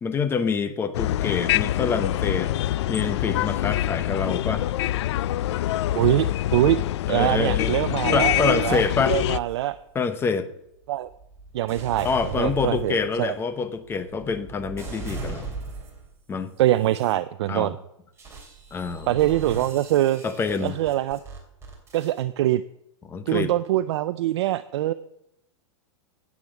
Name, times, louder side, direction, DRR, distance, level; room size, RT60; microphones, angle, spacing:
voice 1, 0.0-2.5 2.9-4.7 7.1-7.7 8.1-9.2 9.9-10.5 12.0-15.5 16.3-16.5 17.5-17.7 18.7-19.1 20.2-20.8 23.0-23.5, left 5 dB, 15° left, 11 dB, 0.9 m, -26 dB
sound 1, 0.9-9.4, left 13 dB, 65° left, 0.4 m, -25 dB
voice 2, 5.9-6.3 6.5-6.8 7.1-8.8 9.1-9.8 10.9-11.1 11.5-12.1 12.4-13.3 16.6-17.8 19.1-20.2 20.6-21.2 21.9-22.6 23.3-24.9, right 14 dB, 65° right, 13 dB, 0.5 m, -23 dB
sound 2, 8.4-10.0 10.7-16.2 16.7-17.1 18.2-22.2, right 3 dB, 15° right, 3.1 m, -39 dB
10.0 x 8.6 x 7.3 m, 0.80 s
hypercardioid pair, 145°, 16 cm